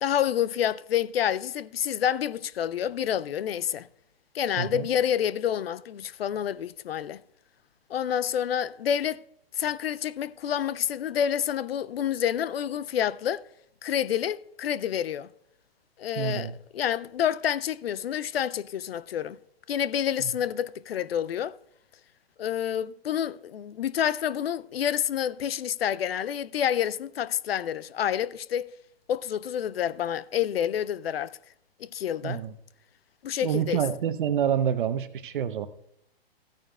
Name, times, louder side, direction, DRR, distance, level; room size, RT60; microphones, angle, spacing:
voice 1, 0.0-3.9 4.3-7.2 7.9-9.2 9.6-13.4 13.8-15.3 16.0-19.4 19.7-21.6 22.4-28.7 29.1-31.4 31.8-32.4 33.2-33.8, left 9 dB, 70° left, 0.5 m, -28 dB
voice 2, 4.6-4.9 16.2-16.5 20.2-20.3 32.2-32.5 33.4-35.7, right 9 dB, 55° right, 0.9 m, -27 dB
15.5 x 9.1 x 2.3 m
hypercardioid pair, 130°, 31 cm